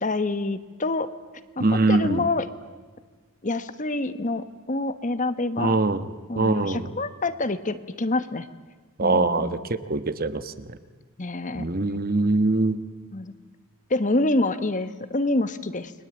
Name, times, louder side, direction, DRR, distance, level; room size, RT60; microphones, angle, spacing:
voice 1, 0.0-1.1 1.6-2.5 3.4-5.8 6.3-8.5 9.0-9.7 11.2-11.7 13.1-13.3 13.9-15.9, left 2 dB, 35° left, 12 dB, 1.2 m, -27 dB
voice 2, 1.6-2.2 5.6-6.1 6.4-6.9 9.0-10.7 11.6-12.8, right 2 dB, 45° right, 11 dB, 1.3 m, -23 dB
29.5 x 22.0 x 8.9 m, 1.4 s
head